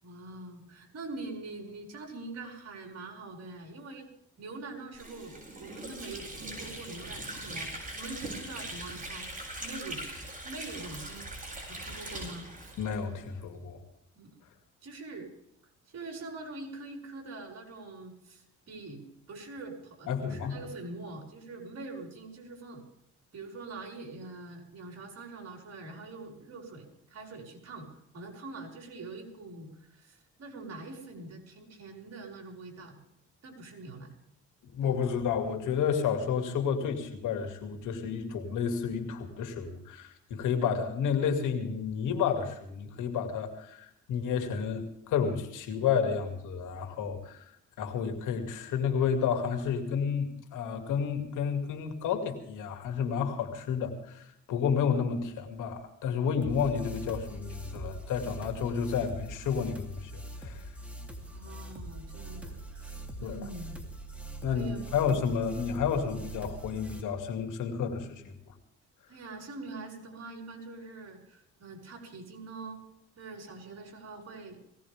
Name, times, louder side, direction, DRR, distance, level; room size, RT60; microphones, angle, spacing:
voice 1, 0.0-4.1 4.4-9.3 9.6-10.0 10.4-11.3 11.7-12.5 14.2-14.3 14.8-15.3 15.9-22.8 23.3-33.0 33.4-34.2 34.8-35.0 61.2-63.9 64.5-64.9 69.1-72.8 73.2-74.6, right 3 dB, 55° right, 1 dB, 5.7 m, -44 dB
Water / Sink (filling or washing), 4.9-13.5, right 1 dB, 25° right, 8.0 m, -41 dB
voice 2, 12.8-13.8 20.1-20.6 34.6-47.4 47.8-60.7 63.2-63.4 64.4-68.5, left 7 dB, 85° left, 5 dB, 2.7 m, -31 dB
sound 1, 56.4-67.0, right 1 dB, 5° right, 3.3 m, -42 dB
20.5 x 17.5 x 3.7 m, 0.76 s
cardioid pair, 90°, 30 cm